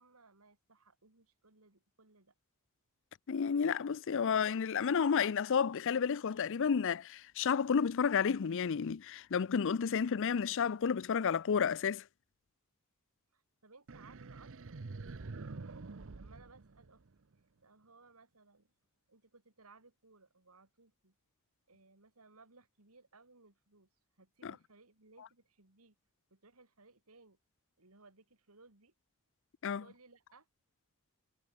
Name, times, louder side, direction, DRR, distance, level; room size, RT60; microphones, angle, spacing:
voice 1, 0.0-2.3 13.3-14.8 15.2-17.0 17.6-18.7 19.1-21.1 21.7-23.9 24.2-26.0 26.3-27.4 27.8-28.9 29.8-30.5, right 3 dB, 80° right, 3.4 m, -62 dB
voice 2, 3.3-12.0 24.4-24.5 29.6-29.8, left 6 dB, 60° left, 0.5 m, -31 dB
sound 1, 13.9-17.3, right 3 dB, 65° right, 0.8 m, -47 dB
head